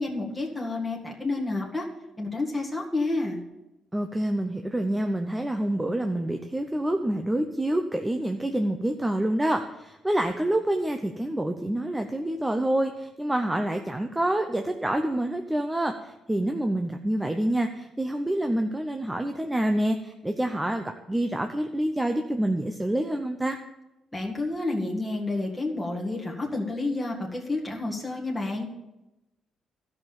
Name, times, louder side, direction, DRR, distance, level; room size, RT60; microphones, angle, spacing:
voice 1, 0.0-1.9 2.2-3.4 24.1-28.7, left 2 dB, 10° left, -3 dB, 1.9 m, -30 dB
voice 2, 3.9-23.6, right 1 dB, 10° right, 5 dB, 0.7 m, -27 dB
12.5 x 5.9 x 6.9 m, 0.97 s
cardioid pair, 90°, 0 cm